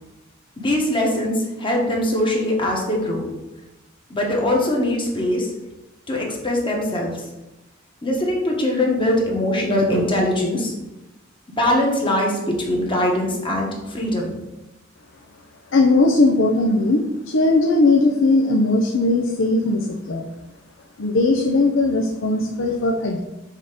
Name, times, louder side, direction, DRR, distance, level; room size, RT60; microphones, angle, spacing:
voice 1, 0.6-3.3 4.1-5.5 6.1-7.3 8.0-10.7 11.5-14.4, left 1 dB, 25° left, -1 dB, 1.4 m, -22 dB
voice 2, 15.7-20.3 21.0-23.2, left 2 dB, 70° left, 2 dB, 0.6 m, -18 dB
6.4 x 3.6 x 5.1 m, 0.99 s
head